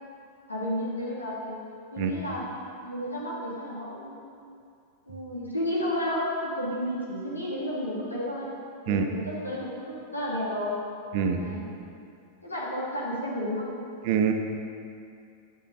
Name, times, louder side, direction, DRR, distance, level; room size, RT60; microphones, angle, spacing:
voice 1, 0.5-1.6 1.9-2.5 2.8-4.5 5.1-8.5 8.8-9.7 10.1-10.8 11.4-11.6 12.4-13.7, equal, 85° left, -6 dB, 2.8 m, -32 dB
voice 2, 2.0-2.1 8.9-9.0 11.1-11.4 14.0-14.3, right 7 dB, 45° right, 5 dB, 0.9 m, -24 dB
11.5 x 8.8 x 4.1 m, 2.4 s
figure-of-eight pair, 90°, 0 cm